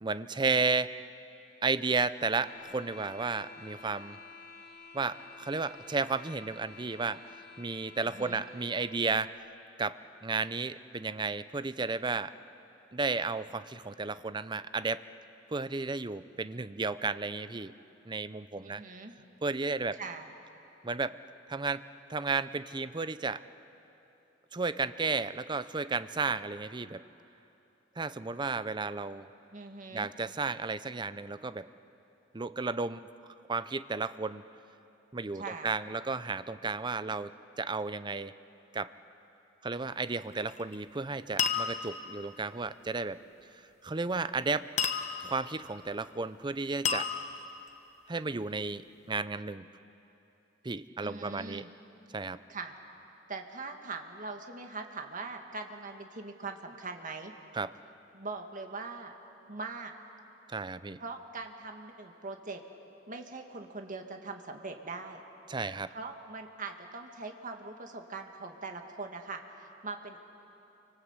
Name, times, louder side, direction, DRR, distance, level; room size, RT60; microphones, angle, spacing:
voice 1, 0.0-0.9 1.6-4.2 4.9-7.2 7.6-9.3 9.8-12.3 12.9-15.0 15.5-17.7 18.1-18.8 19.4-20.0 20.8-21.2 21.5-21.8 22.1-23.4 24.5-27.0 28.0-29.3 29.9-31.7 32.3-33.1 33.5-34.4 35.1-37.3 37.6-38.3 38.7-38.9 39.6-43.2 43.8-44.7 45.2-47.1 48.1-48.8 49.1-49.6 50.6-51.6 52.1-52.4 57.5-57.7 60.5-61.0 65.5-65.9, right 4 dB, 25° right, 14 dB, 0.6 m, -33 dB
sound 1, 2.0-9.1, left 4 dB, 60° left, 2.0 m, -51 dB
voice 2, 8.0-8.4 18.6-19.1 19.9-20.3 29.5-30.1 35.3-35.7 51.0-51.7 52.5-52.8 53.3-57.3 58.1-59.1 59.5-59.9 61.0-62.6 63.1-65.2 65.9-70.2, right 3 dB, 45° right, 4 dB, 2.0 m, -41 dB
sound 2, 40.3-40.7 41.4-42.1 44.8-45.5 46.8-47.7, left 6 dB, 40° left, 1.3 m, -32 dB
28.5 x 25.0 x 8.2 m, 3.0 s
head